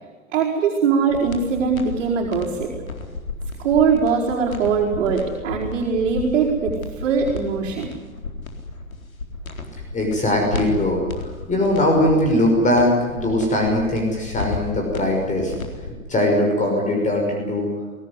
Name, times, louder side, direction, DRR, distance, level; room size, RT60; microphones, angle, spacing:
voice 1, 0.3-2.7 3.6-7.9, right 6 dB, 50° right, -4 dB, 4.8 m, -21 dB
sound 1, 1.1-16.0, left 3 dB, 75° left, 4.1 m, -33 dB
voice 2, 9.9-11.0 11.5-15.5 16.1-17.7, left 1 dB, 15° left, 1 dB, 5.8 m, -20 dB
23.5 x 18.0 x 9.8 m, 1.4 s
figure-of-eight pair, 100°, 41 cm